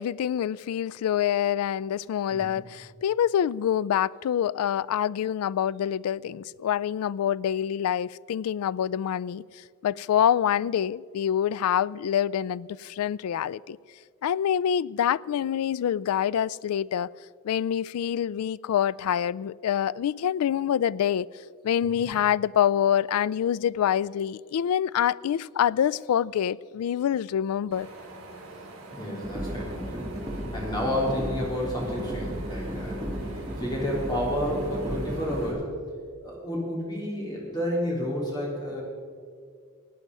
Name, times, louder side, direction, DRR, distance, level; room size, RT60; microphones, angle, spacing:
voice 1, 0.0-9.4 9.8-13.8 14.2-17.1 17.4-21.3 21.6-27.9, left 9 dB, 85° left, 0.3 m, -26 dB
Wind, 27.7-35.5, right 2 dB, 65° right, 4.2 m, -44 dB
voice 2, 28.9-30.1 30.5-35.7 36.2-38.8, equal, 20° left, 3.5 m, -31 dB
sound 1, 29.2-35.5, equal, 15° right, 1.5 m, -34 dB
17.5 x 9.8 x 5.4 m
head